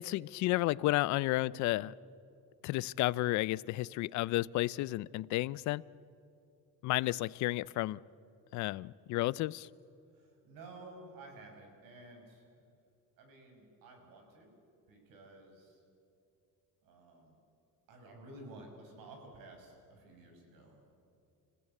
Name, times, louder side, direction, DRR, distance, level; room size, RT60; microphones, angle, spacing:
voice 1, 0.0-1.9 2.6-5.8 6.8-8.0 8.5-9.7, left 18 dB, 55° left, 21 dB, 0.4 m, -32 dB
voice 2, 10.1-12.5 13.2-14.5 14.9-15.8 16.8-17.4 17.9-20.9, right 2 dB, 70° right, 3 dB, 5.7 m, -53 dB
27.5 x 15.5 x 8.3 m, 2.7 s
cardioid pair, 175°, 35 cm